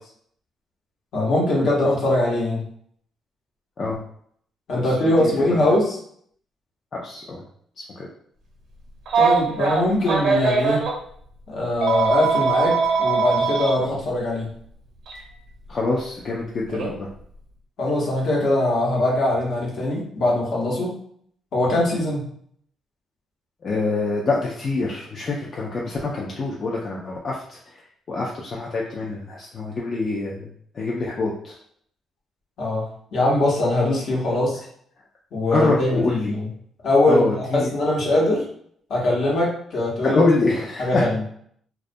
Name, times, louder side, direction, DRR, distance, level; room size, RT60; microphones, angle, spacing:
voice 1, 1.1-2.6 4.7-5.9 9.1-10.8 11.5-14.5 17.8-21.0 21.5-22.2 32.6-32.9 33.1-34.6 35.3-36.5 36.8-38.4 38.9-40.2 40.8-41.2, left 1 dB, 65° left, -4 dB, 0.9 m, -21 dB
voice 2, 6.9-7.4 7.8-8.1 15.7-17.1 23.6-27.8 28.1-31.6 35.5-36.3 37.1-37.7 40.0-41.1, left 3 dB, 45° left, -3 dB, 0.4 m, -25 dB
Telephone, 9.1-10.9 11.8-13.7 15.1-15.2 16.7-16.9, right 5 dB, 75° right, 0.7 m, -21 dB
2.2 x 2.1 x 2.6 m, 0.64 s
cardioid pair, 90°, 0 cm